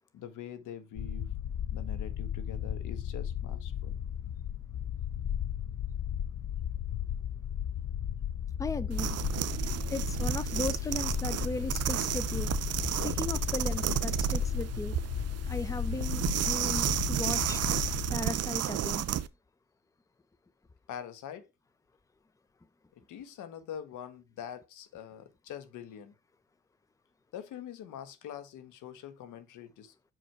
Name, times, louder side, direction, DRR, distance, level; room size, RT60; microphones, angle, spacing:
voice 1, 0.1-1.3 1.7-3.9 12.9-13.2 20.9-21.5 23.1-26.1 27.3-29.9, left 9 dB, 85° left, 1.2 m, -44 dB
sound 1, 1.0-18.1, left 9 dB, 50° left, 0.6 m, -35 dB
voice 2, 8.6-9.2 9.9-12.5 13.0-15.0 15.4-17.6 18.1-19.1, left 2 dB, 10° left, 0.6 m, -37 dB
sound 2, 8.9-19.3, right 11 dB, 55° right, 0.6 m, -32 dB
6.0 x 5.0 x 4.4 m
cardioid pair, 90°, 30 cm